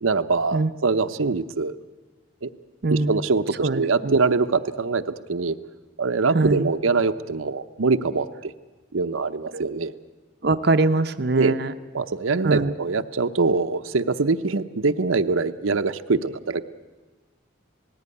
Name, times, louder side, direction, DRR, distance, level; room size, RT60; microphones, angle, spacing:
voice 1, 0.0-1.7 2.4-2.5 2.9-5.0 5.3-5.6 6.0-8.5 8.9-9.9 11.3-11.5 11.9-16.6, right 4 dB, 90° right, 9 dB, 0.8 m, -23 dB
voice 2, 3.6-4.1 6.3-6.7 9.5-9.7 10.4-11.7 12.4-12.7, right 3 dB, 50° right, 9 dB, 0.7 m, -22 dB
19.0 x 16.0 x 9.8 m, 1.2 s
head